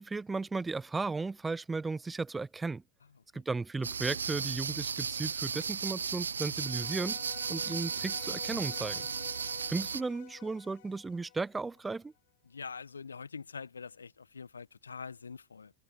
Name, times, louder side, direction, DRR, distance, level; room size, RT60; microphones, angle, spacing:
voice 1, 0.0-2.8 3.3-7.2 7.5-9.0 9.7-12.1, right 3 dB, 10° right, 0.4 m, -35 dB
sound 1, 3.8-10.0, right 6 dB, 70° right, 0.4 m, -35 dB
sound 2, 6.6-11.8, left 18 dB, 50° left, 4.6 m, -50 dB
voice 2, 12.4-15.7, left 5 dB, 75° left, 1.2 m, -44 dB
figure-of-eight pair, 90°, 0 cm